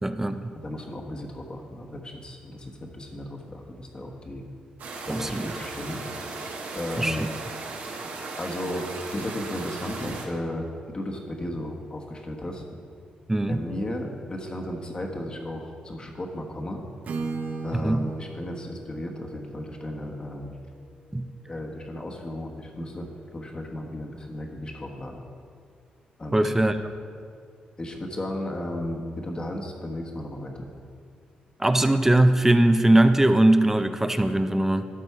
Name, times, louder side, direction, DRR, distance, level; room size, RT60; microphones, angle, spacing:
voice 1, 0.0-0.5 5.1-5.5 7.0-7.3 13.3-13.6 17.8-18.1 21.1-21.3 26.3-26.9 31.6-34.8, right 1 dB, 15° right, 9 dB, 0.4 m, -21 dB
voice 2, 0.5-4.4 5.0-6.0 6.7-7.3 8.4-12.6 13.5-16.8 17.6-20.6 21.5-25.2 26.2-26.5 27.8-30.7, left 1 dB, 30° left, 2 dB, 1.2 m, -34 dB
sound 1, 4.8-10.3, right 3 dB, 80° right, 1.2 m, -36 dB
Acoustic guitar / Strum, 17.0-21.0, right 4 dB, 60° right, 0.7 m, -37 dB
12.5 x 4.4 x 4.7 m, 2.2 s
cardioid pair, 80°, 3 cm